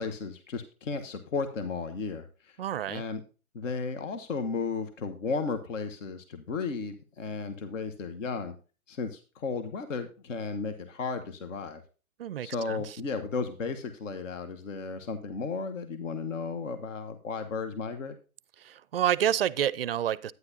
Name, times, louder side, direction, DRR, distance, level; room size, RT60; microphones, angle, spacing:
voice 1, 0.0-2.6 2.9-3.2 3.5-8.5 8.9-11.8 12.4-18.2, left 4 dB, 60° left, 1.3 m, -34 dB
voice 2, 2.6-3.0 12.2-12.8 18.6-20.3, right 10 dB, 45° right, 0.4 m, -28 dB
9.7 x 9.6 x 2.7 m
hypercardioid pair, 140°, 43 cm